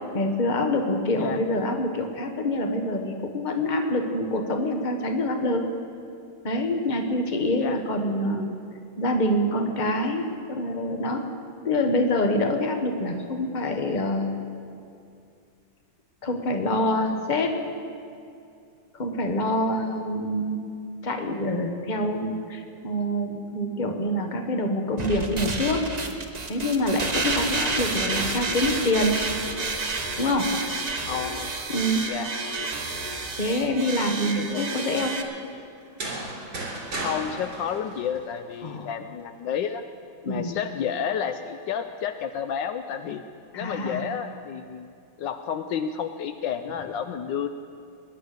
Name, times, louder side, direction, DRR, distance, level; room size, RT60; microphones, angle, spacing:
voice 1, 0.1-5.6 6.4-8.5 9.0-11.2 11.6-14.3 16.2-17.5 19.0-20.6 21.0-25.8 26.5-29.2 30.2-30.5 31.7-32.1 33.4-35.2 38.6-38.8 40.2-40.5 43.5-44.0, left 1 dB, 25° left, 4 dB, 1.3 m, -26 dB
sound 1, 25.0-35.2, right 3 dB, 30° right, 0.9 m, -30 dB
voice 2, 31.0-31.5 32.0-32.3 34.3-34.7 37.0-39.8 40.3-43.2 43.5-44.9 45.2-47.5, left 8 dB, 75° left, 9 dB, 1.3 m, -31 dB
sound 2, 35.8-38.7, right 2 dB, 55° right, 4.1 m, -34 dB
21.0 x 10.5 x 6.7 m, 2.5 s
omnidirectional pair, 2.1 m